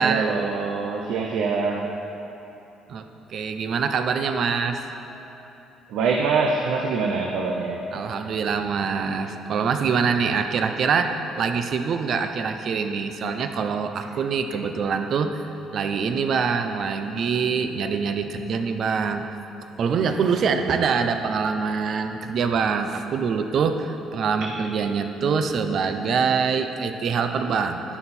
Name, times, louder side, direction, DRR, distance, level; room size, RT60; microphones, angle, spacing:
voice 1, 0.0-1.9 5.9-7.8, right 4 dB, 70° right, 0 dB, 0.8 m, -24 dB
voice 2, 2.9-4.9 7.9-15.5 15.7-19.4 19.8-27.8, right 5 dB, 40° right, 7 dB, 0.6 m, -24 dB
11.0 x 11.0 x 4.4 m, 3.0 s
cardioid pair, 170°, 0 cm